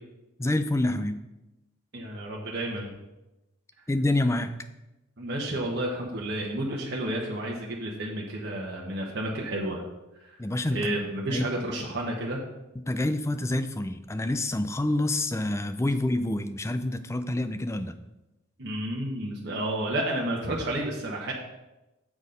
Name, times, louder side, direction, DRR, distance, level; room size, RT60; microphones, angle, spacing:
voice 1, 0.4-1.2 3.9-4.5 10.4-10.9 11.3-11.9 12.9-17.9, left 1 dB, 15° left, 9 dB, 0.4 m, -27 dB
voice 2, 1.9-2.9 5.2-9.8 10.2-10.4 10.7-12.4 18.6-21.3, right 1 dB, 55° right, -3 dB, 1.2 m, -31 dB
7.3 x 6.3 x 5.1 m, 0.98 s
head